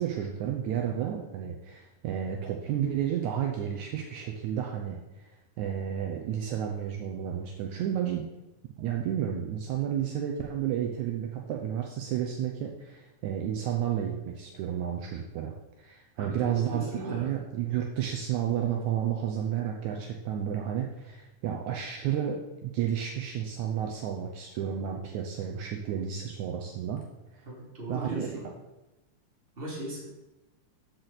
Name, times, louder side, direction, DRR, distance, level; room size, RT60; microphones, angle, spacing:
voice 1, 0.0-5.0 5.6-8.2 8.8-27.0 27.3-27.4 27.9-28.4, right 9 dB, 75° right, 1 dB, 2.0 m, -31 dB
voice 2, 16.2-17.3 27.4-28.5 29.6-30.1, right 1 dB, 20° right, -5 dB, 2.7 m, -37 dB
13.0 x 6.2 x 4.1 m, 1.0 s
omnidirectional pair, 3.7 m